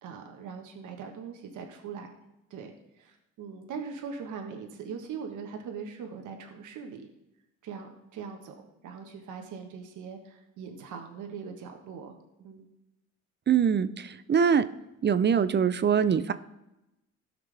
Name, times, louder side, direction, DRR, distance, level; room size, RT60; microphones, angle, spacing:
voice 1, 0.0-2.1 2.5-7.1 7.6-12.1 12.4-12.7, right 6 dB, 80° right, 4 dB, 1.5 m, -41 dB
voice 2, 13.5-14.6 15.0-16.3, right 7 dB, 35° right, 13 dB, 0.5 m, -23 dB
16.5 x 5.9 x 3.4 m, 0.93 s
cardioid pair, 90°, 30 cm